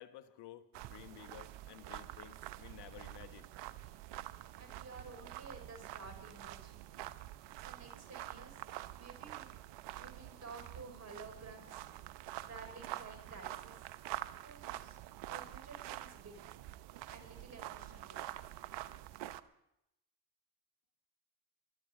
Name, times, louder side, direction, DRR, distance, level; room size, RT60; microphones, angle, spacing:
voice 1, 0.0-3.5, left 11 dB, 60° left, 9 dB, 1.4 m, -54 dB
sound 1, 0.7-19.4, right 14 dB, 65° right, 0.9 m, -47 dB
voice 2, 4.6-6.9 7.6-8.6 9.0-9.5 10.0-11.9 12.5-13.8 14.4-15.0 15.2-16.4 17.1-18.2, right 3 dB, 35° right, 5 dB, 5.2 m, -52 dB
19.5 x 12.5 x 5.2 m, 0.84 s
hypercardioid pair, 65°, 46 cm